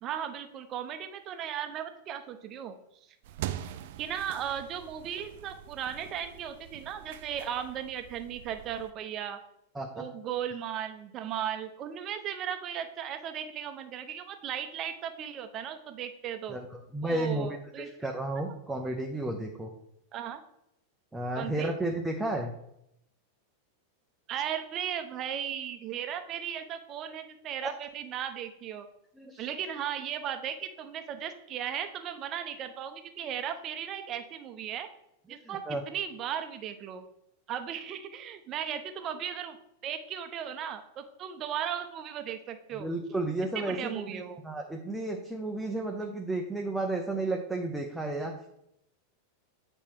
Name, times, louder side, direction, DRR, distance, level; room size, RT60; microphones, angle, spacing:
voice 1, 0.0-2.7 4.0-9.4 10.0-16.6 17.0-17.9 18.8-18.9 20.1-20.4 21.4-21.7 24.3-28.9 29.4-34.9 35.3-37.0 37.5-39.6 39.8-42.9 43.5-44.4, right 9 dB, 35° right, 8 dB, 0.8 m, -36 dB
sound 1, 3.2-8.9, right 12 dB, 50° right, 0.4 m, -43 dB
voice 2, 16.9-17.5 17.8-19.7 21.1-22.5 27.6-27.7 29.2-29.4 35.4-35.8 42.7-48.3, right 2 dB, 5° right, 1 dB, 0.8 m, -32 dB
8.5 x 4.4 x 4.6 m, 0.78 s
figure-of-eight pair, 90°, 0 cm